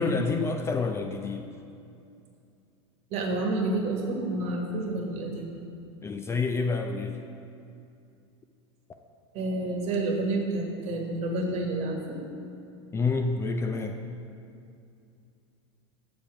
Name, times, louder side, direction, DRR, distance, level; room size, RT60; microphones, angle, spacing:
voice 1, 0.0-1.5 6.0-7.2 12.9-14.0, left 4 dB, 20° left, 5 dB, 0.4 m, -28 dB
voice 2, 3.1-5.5 9.3-12.2, right 2 dB, 45° right, 2 dB, 1.3 m, -29 dB
7.1 x 4.8 x 6.0 m, 2.6 s
supercardioid pair, 115°, 15 cm